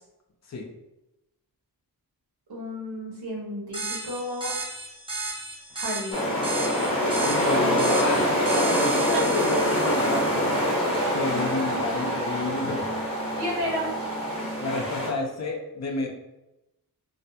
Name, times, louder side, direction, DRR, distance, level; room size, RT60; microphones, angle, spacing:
voice 1, 2.5-4.5 5.7-6.2 9.1-9.2 13.4-13.9, equal, 80° right, -3 dB, 1.0 m, -32 dB
sound 1, 3.7-10.9, right 2 dB, 15° right, 0.5 m, -35 dB
sound 2, 6.1-15.1, equal, 15° left, 0.7 m, -25 dB
voice 2, 7.2-10.7 11.1-12.8 14.6-16.1, left 3 dB, 45° left, 1 dB, 0.5 m, -31 dB
sound 3, 9.4-14.4, right 3 dB, 55° right, 0.6 m, -36 dB
2.5 x 2.2 x 2.7 m, 0.94 s
wide cardioid pair, 155°, 38 cm